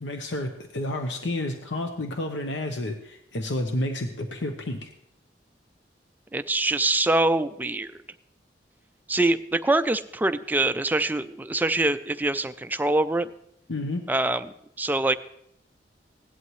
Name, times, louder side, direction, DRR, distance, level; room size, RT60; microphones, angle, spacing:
voice 1, 0.0-4.9 13.7-14.0, left 1 dB, 85° left, 5 dB, 0.9 m, -30 dB
voice 2, 6.3-7.9 9.1-13.3 14.1-14.5 14.8-15.1, right 2 dB, 10° right, 10 dB, 0.4 m, -24 dB
16.5 x 11.0 x 3.1 m, 0.76 s
head